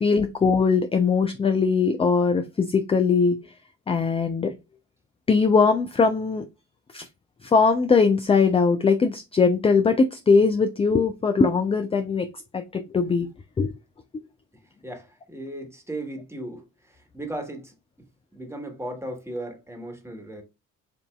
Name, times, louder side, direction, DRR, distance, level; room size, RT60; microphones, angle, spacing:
voice 1, 0.0-3.4 3.9-4.5 5.3-6.4 6.9-7.0 7.4-12.3 12.5-13.3 13.6-13.7, left 5 dB, 15° left, 0.4 m, -21 dB
voice 2, 14.8-17.7 18.3-20.4, right 1 dB, 5° right, 1.3 m, -36 dB
6.9 x 2.6 x 2.3 m
hypercardioid pair, 45°, 41 cm